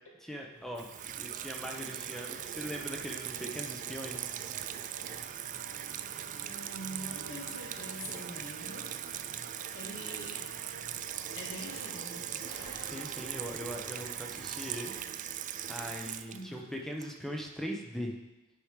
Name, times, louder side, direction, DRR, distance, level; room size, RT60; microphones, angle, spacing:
voice 1, 0.2-0.9 1.2-4.2 12.8-14.9 15.7-18.2, equal, ahead, 1 dB, 0.9 m, -40 dB
sound 1, 0.5-14.9, equal, 20° left, 1.5 m, -55 dB
Water tap faucet / Sink (filling or washing), 0.8-17.5, right 11 dB, 35° right, 0.3 m, -40 dB
sound 2, 1.3-15.0, right 4 dB, 65° right, 0.7 m, -51 dB
voice 2, 6.4-8.9 9.7-10.4 11.3-12.4 16.3-16.7, equal, 65° left, -3 dB, 2.2 m, -44 dB
9.9 x 5.0 x 4.9 m, 0.99 s
head